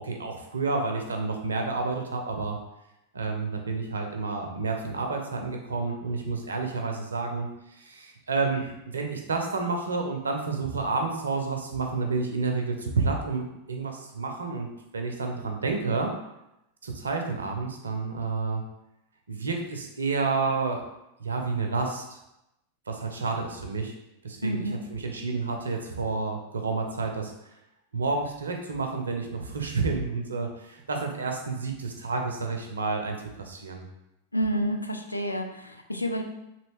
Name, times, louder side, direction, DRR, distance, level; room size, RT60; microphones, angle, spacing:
voice 1, 0.0-2.6 3.1-14.7 14.9-16.1 16.8-18.6 19.3-20.8 21.2-22.2 22.9-23.9 24.2-27.3 27.9-33.9, right 4 dB, 70° right, 3 dB, 0.5 m, -30 dB
voice 2, 24.4-24.8 34.3-36.2, equal, 85° left, 4 dB, 0.3 m, -29 dB
3.1 x 2.8 x 3.1 m, 0.87 s
figure-of-eight pair, 90°, 0 cm